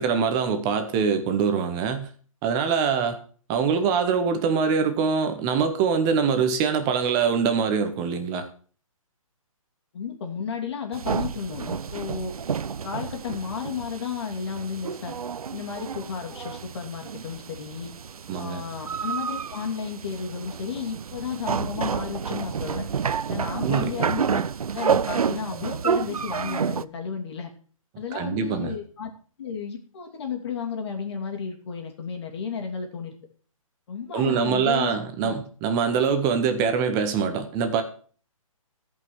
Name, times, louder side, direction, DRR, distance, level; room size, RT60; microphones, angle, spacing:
voice 1, 0.0-2.1 2.4-3.2 3.5-8.5 18.3-18.6 23.6-23.9 28.1-28.7 34.1-37.8, right 6 dB, 20° right, 8 dB, 1.0 m, -24 dB
voice 2, 9.9-12.3 12.8-15.1 15.5-17.9 18.4-22.9 23.3-24.4 24.7-27.5 28.0-29.1 29.4-33.1 33.9-34.9 35.2-35.3, left 6 dB, 50° left, 3 dB, 2.6 m, -33 dB
sound 1, 10.9-26.8, right 6 dB, 90° right, 0.5 m, -30 dB
14.0 x 5.5 x 6.2 m, 0.43 s
hypercardioid pair, 150°, 18 cm